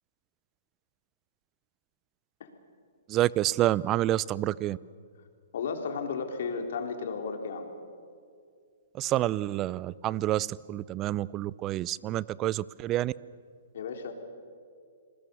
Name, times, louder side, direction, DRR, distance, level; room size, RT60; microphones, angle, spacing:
voice 1, 3.1-4.8 8.9-13.1, right 14 dB, 25° right, 22 dB, 0.5 m, -28 dB
voice 2, 5.5-7.7 13.7-14.1, left 5 dB, 65° left, 3 dB, 3.8 m, -34 dB
28.0 x 20.5 x 7.1 m, 2.2 s
hypercardioid pair, 140°, 0 cm